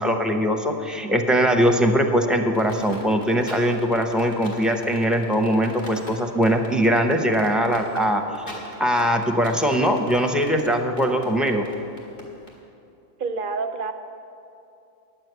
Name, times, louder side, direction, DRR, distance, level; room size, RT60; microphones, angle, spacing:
voice 1, 0.0-8.2 8.8-11.7, equal, ahead, 3 dB, 0.5 m, -21 dB
sound 1, 2.5-12.5, equal, 80° left, 2.3 m, -41 dB
voice 2, 13.2-13.9, right 4 dB, 60° right, 8 dB, 0.7 m, -27 dB
9.9 x 7.7 x 8.0 m, 2.8 s
omnidirectional pair, 1.1 m